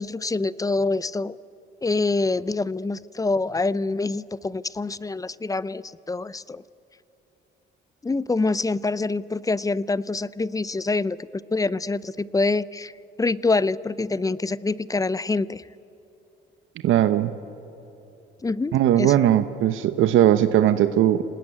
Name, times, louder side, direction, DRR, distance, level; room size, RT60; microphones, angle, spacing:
voice 1, 0.0-1.4 1.8-6.6 8.0-12.9 13.2-15.6 18.4-19.1, left 3 dB, 15° left, 19 dB, 0.5 m, -25 dB
voice 2, 16.8-17.3 18.7-21.2, right 11 dB, 85° right, 11 dB, 0.9 m, -19 dB
28.0 x 19.5 x 9.6 m, 3.0 s
cardioid pair, 90°, 20 cm